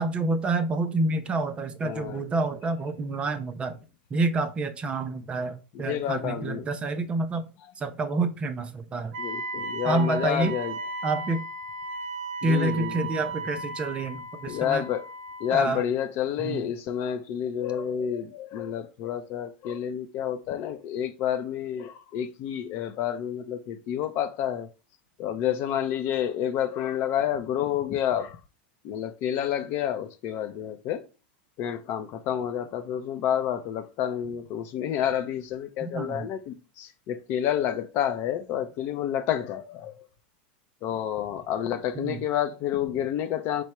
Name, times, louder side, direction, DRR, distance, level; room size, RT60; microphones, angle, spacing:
voice 1, 0.0-3.8 4.1-7.5 7.8-9.1 9.8-10.6 11.0-11.4 12.4-14.8 15.5-15.8 16.4-16.6 35.8-36.3 41.9-42.2, right 2 dB, 20° right, 0.4 m, -28 dB
voice 2, 1.8-2.2 5.8-6.7 9.2-10.7 12.4-13.0 14.5-15.0 15.4-24.7 25.2-28.4 28.8-31.0 31.6-39.9 40.8-43.6, left 10 dB, 45° left, 0.5 m, -29 dB
Wind instrument woodwind instrument, 9.1-15.6, right 3 dB, 65° right, 0.6 m, -36 dB
4.6 x 2.1 x 4.2 m
supercardioid pair, 130°, 5 cm